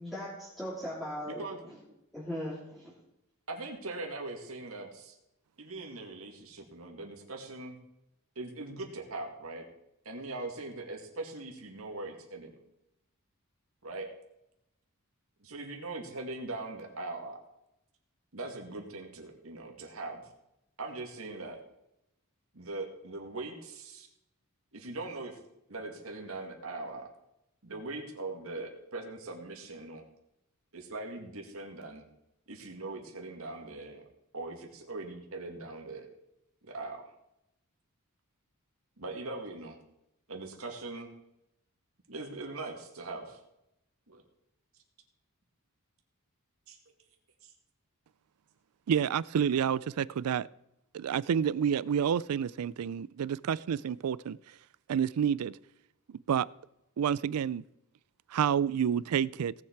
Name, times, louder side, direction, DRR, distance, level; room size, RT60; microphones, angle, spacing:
voice 1, 0.0-1.4 2.1-2.9, equal, ahead, 3.1 m, -38 dB
voice 2, 1.3-1.6 3.5-5.2 5.6-7.8 8.4-9.6 10.0-12.6 13.8-14.1 15.4-17.4 18.3-20.3 20.8-21.6 22.5-24.1 24.7-25.4 25.7-27.1 27.6-30.0 30.7-32.1 32.5-34.0 34.3-36.1 36.6-37.1 39.0-39.8 40.3-41.1 42.1-43.4 44.1-44.2 46.7-46.8 47.4-47.5, right 2 dB, 70° right, 2.2 m, -41 dB
voice 3, 48.9-50.5 50.9-54.4 54.9-55.6 56.3-56.5 57.0-57.6 58.3-59.5, right 8 dB, 85° right, 0.4 m, -29 dB
18.0 x 7.2 x 4.7 m
head